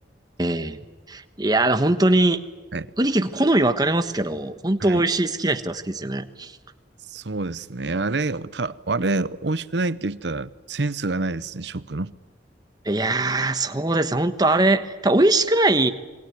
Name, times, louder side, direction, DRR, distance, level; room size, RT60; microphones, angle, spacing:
voice 1, 0.4-0.8 1.1-2.4 3.0-6.5 12.8-15.9, right 2 dB, 20° right, 1.3 m, -21 dB
voice 2, 7.1-12.1, right 3 dB, 70° right, 0.9 m, -27 dB
27.5 x 23.0 x 9.4 m
head